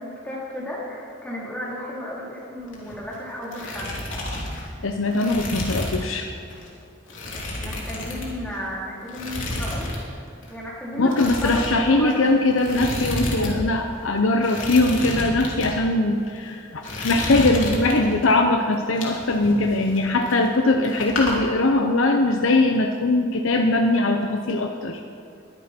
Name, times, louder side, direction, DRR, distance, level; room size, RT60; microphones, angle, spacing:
voice 1, 0.0-4.0 7.6-10.2 10.5-11.1 11.4-12.3, left 1 dB, 10° left, -6 dB, 3.6 m, -33 dB
sound 1, 2.6-3.1 3.4-6.1 6.5-6.7 7.1-8.7 9.1-10.0 10.3-10.5 11.1-13.5 13.8-13.9 14.4-15.7 16.3-16.5 16.8-18.3 18.7-20.6 20.8-21.3, left 2 dB, 70° left, 3.3 m, -30 dB
voice 2, 4.8-6.3 11.0-25.0, left 2 dB, 90° left, 4 dB, 0.8 m, -21 dB
21.5 x 10.5 x 4.4 m, 2.5 s
head